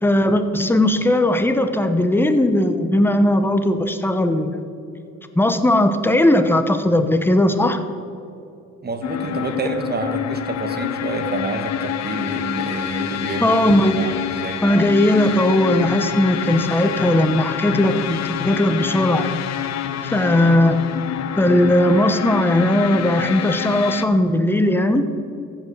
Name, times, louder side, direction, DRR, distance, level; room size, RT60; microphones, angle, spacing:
voice 1, 0.0-4.6 5.4-7.8 13.4-14.2 14.6-19.3 20.0-20.8 21.4-25.1, left 1 dB, 5° left, 8 dB, 0.9 m, -18 dB
voice 2, 8.8-14.6, right 3 dB, 30° right, 6 dB, 1.4 m, -28 dB
sound 1, 9.0-24.1, left 10 dB, 60° left, 0.6 m, -27 dB
15.0 x 5.1 x 6.6 m, 2.6 s
cardioid pair, 90°, 30 cm